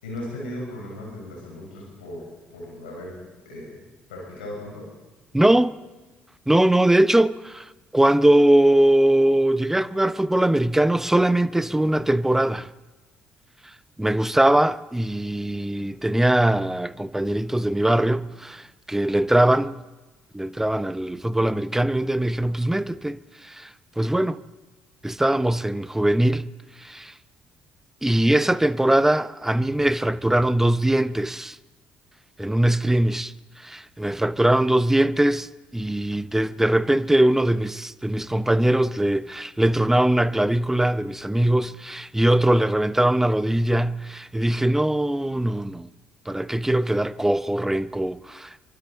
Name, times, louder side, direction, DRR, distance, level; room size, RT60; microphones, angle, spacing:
voice 1, 0.0-2.3 2.5-3.8 4.1-4.9, left 1 dB, 75° left, 6.2 m, -37 dB
voice 2, 5.3-5.7 6.5-7.7 7.9-12.7 14.0-19.8 20.3-23.7 24.0-24.4 25.0-26.5 26.8-27.1 28.0-31.6 32.4-33.3 33.6-45.9 46.3-48.6, right 1 dB, 5° right, 0.8 m, -21 dB
25.0 x 24.0 x 4.4 m
figure-of-eight pair, 45°, 5 cm